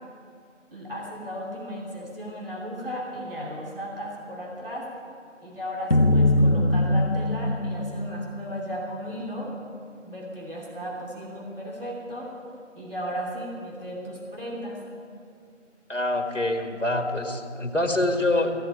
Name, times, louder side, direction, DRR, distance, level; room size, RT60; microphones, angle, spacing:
voice 1, 0.7-4.9 5.4-9.6 10.0-12.3 12.7-14.8, equal, 50° right, -3 dB, 2.8 m, -35 dB
sound 1, 5.9-9.1, left 1 dB, 50° left, 0.5 m, -22 dB
voice 2, 15.9-18.5, left 2 dB, 75° left, 5 dB, 1.8 m, -25 dB
15.0 x 7.9 x 9.0 m, 2.4 s
figure-of-eight pair, 175°, 37 cm